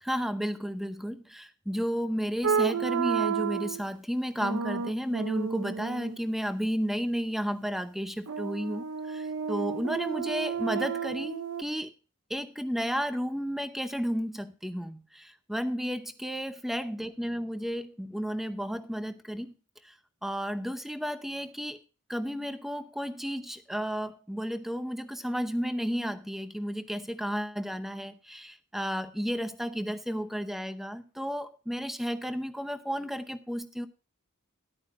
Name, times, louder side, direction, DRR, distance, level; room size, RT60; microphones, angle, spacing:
voice 1, 0.0-11.9 12.3-19.5 19.8-19.9 20.2-21.8 22.1-33.9, equal, ahead, 0.7 m, -33 dB
sound 1, 2.4-3.8 4.4-6.2 8.3-11.6, right 7 dB, 75° right, 0.7 m, -31 dB
13.0 x 11.0 x 2.6 m
head